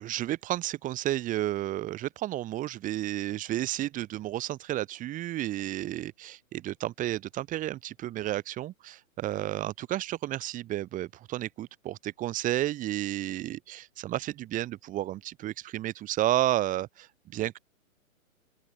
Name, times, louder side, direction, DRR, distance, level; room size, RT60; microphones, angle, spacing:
voice 1, 0.0-17.6, right 14 dB, 20° right, 2.1 m, -32 dB
open air
hypercardioid pair, 145°, 42 cm